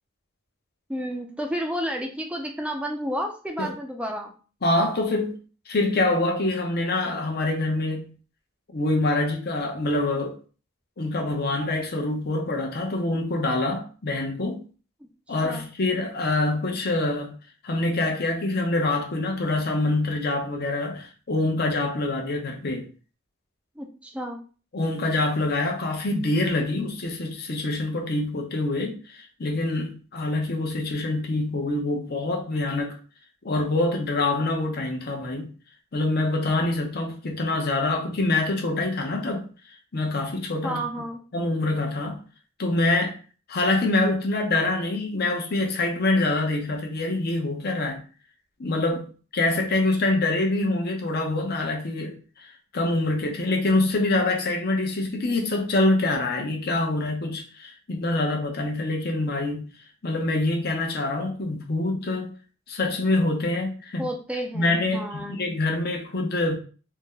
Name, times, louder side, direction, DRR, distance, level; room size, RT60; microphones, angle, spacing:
voice 1, 0.9-4.3 15.4-15.6 23.8-24.4 40.6-41.2 64.0-65.4, equal, 5° right, 0.4 m, -31 dB
voice 2, 4.6-5.4 5.7-8.1 8.7-10.4 11.0-14.6 15.3-17.4 17.6-22.8 24.7-33.0 33.4-35.5 35.9-39.5 39.9-40.9 41.3-42.2 42.6-43.2 43.5-48.0 48.6-52.5 52.7-59.7 60.0-62.3 62.7-64.1 64.5-66.6, left 2 dB, 50° left, 0.7 m, -25 dB
2.7 x 2.1 x 3.6 m
head